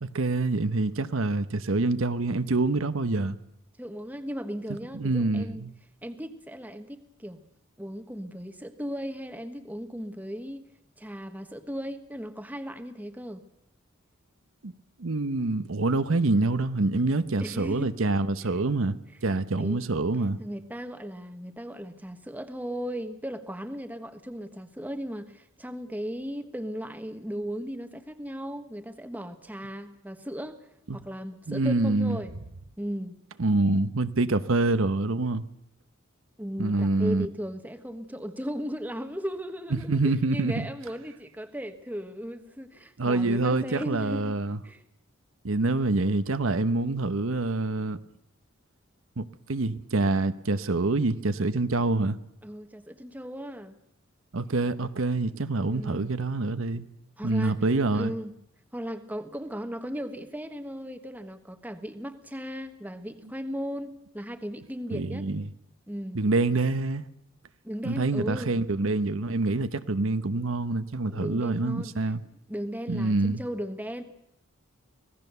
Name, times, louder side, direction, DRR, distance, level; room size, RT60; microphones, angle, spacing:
voice 1, 0.0-3.4 4.9-5.7 14.6-14.7 15.0-19.0 19.2-20.4 30.9-31.0 31.5-32.2 33.4-35.5 36.6-37.3 39.9-40.7 43.0-44.6 45.4-48.0 49.2-52.2 54.3-56.8 57.2-58.1 64.9-65.5 66.1-67.0 67.8-72.2 72.9-73.4, right 2 dB, 80° right, 0.9 m, -26 dB
voice 2, 3.8-5.6 6.0-7.4 7.8-10.6 11.0-13.4 17.4-18.0 19.6-19.8 20.4-30.7 30.9-32.4 32.8-33.2 36.4-44.4 44.6-44.8 52.4-53.7 55.7-56.1 57.2-57.6 57.9-58.3 58.7-65.3 65.9-66.2 67.6-68.6 71.1-72.1 72.5-74.0, equal, 10° right, 1.2 m, -36 dB
25.0 x 17.5 x 6.8 m
head